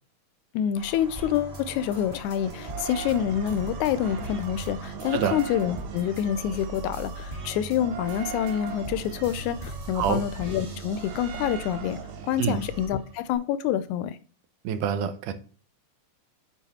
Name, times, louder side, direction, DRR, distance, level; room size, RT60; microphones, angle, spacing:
voice 1, 0.5-12.0 12.2-14.2, left 10 dB, 80° left, 1.9 m, -27 dB
sound 1, 0.7-11.8, equal, 50° right, 2.2 m, -47 dB
sound 2, 1.2-6.2 6.5-11.7 12.2-13.2, right 2 dB, 25° right, 1.3 m, -42 dB
sound 3, 2.4-13.4, right 7 dB, 70° right, 2.2 m, -38 dB
voice 2, 14.6-15.3, right 8 dB, 90° right, 2.4 m, -26 dB
8.2 x 4.5 x 4.1 m
omnidirectional pair, 3.6 m